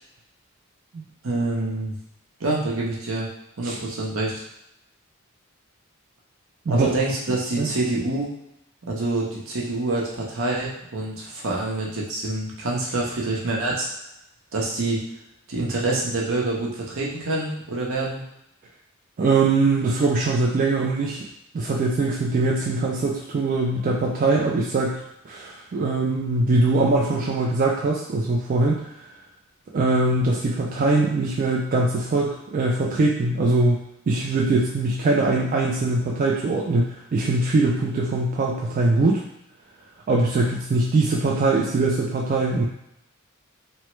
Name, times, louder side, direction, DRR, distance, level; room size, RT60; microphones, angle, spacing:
voice 1, 1.2-1.9 2.4-3.3 3.6-4.4 6.7-8.3 8.9-13.9 14.5-15.0 15.5-18.2, right 2 dB, 70° right, -3 dB, 0.8 m, -26 dB
voice 2, 19.2-21.3 21.5-28.9 29.7-39.2 40.1-42.6, right 2 dB, 40° right, -2 dB, 0.3 m, -22 dB
3.0 x 2.2 x 3.0 m, 0.83 s
head